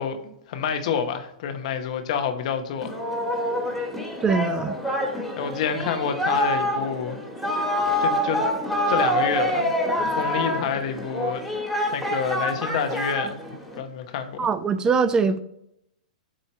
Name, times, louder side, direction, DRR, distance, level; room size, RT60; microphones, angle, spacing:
voice 1, 0.0-3.0 5.4-7.2 8.0-8.4 8.9-9.7 10.1-11.4 11.9-13.4 13.8-14.5, left 7 dB, 60° left, 1.0 m, -28 dB
Singing, 2.8-13.8, equal, ahead, 1.6 m, -26 dB
voice 2, 4.2-4.8 14.4-15.4, right 5 dB, 20° right, 0.4 m, -22 dB
7.8 x 2.8 x 5.5 m
hypercardioid pair, 115°, 4 cm